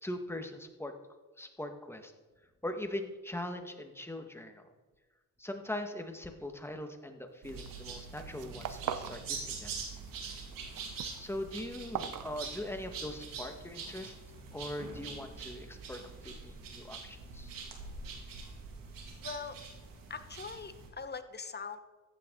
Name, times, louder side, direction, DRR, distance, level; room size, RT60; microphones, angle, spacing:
voice 1, 0.0-0.9 1.4-2.1 2.6-4.7 5.4-9.7 11.2-14.1 14.5-17.5, left 1 dB, 5° left, 5 dB, 1.8 m, -41 dB
sound 1, 7.4-20.9, right 4 dB, 80° right, 2.4 m, -44 dB
sound 2, 7.5-7.8 8.1-9.2 9.5-10.2 10.5-13.0, right 9 dB, 65° right, 0.9 m, -41 dB
voice 2, 19.2-19.6 20.1-21.8, left 5 dB, 30° left, 9 dB, 1.2 m, -42 dB
15.0 x 9.4 x 4.0 m, 1.2 s
cardioid pair, 70°, 33 cm